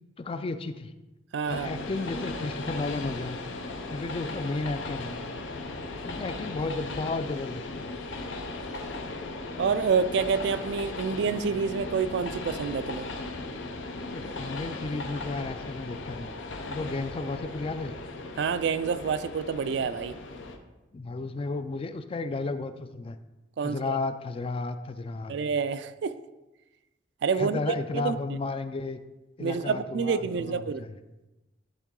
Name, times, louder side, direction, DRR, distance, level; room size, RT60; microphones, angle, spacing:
voice 1, 0.2-0.9 1.5-3.4 3.9-5.2 6.0-7.9 14.1-16.3 16.7-17.9 20.9-23.2 23.6-25.4 27.3-29.0 29.4-31.0, left 3 dB, 30° left, 0.3 m, -33 dB
voice 2, 1.3-1.8 9.6-13.1 18.4-20.1 23.6-24.0 25.3-26.1 27.2-27.6 27.9-28.2 29.4-30.8, right 5 dB, 65° right, 0.3 m, -28 dB
Train, 1.4-20.6, left 2 dB, 85° left, 0.7 m, -37 dB
9.9 x 3.8 x 3.7 m
head